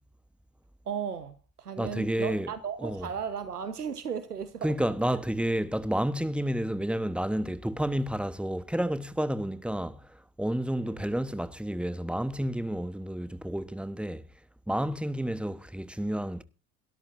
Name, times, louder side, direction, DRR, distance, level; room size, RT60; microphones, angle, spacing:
voice 1, 0.9-4.9 10.8-11.0, right 7 dB, 90° right, 1.2 m, -36 dB
voice 2, 1.8-2.5 2.8-3.1 4.6-14.2 14.7-16.4, right 1 dB, ahead, 1.1 m, -30 dB
22.5 x 13.0 x 2.6 m
figure-of-eight pair, 65°, 45 cm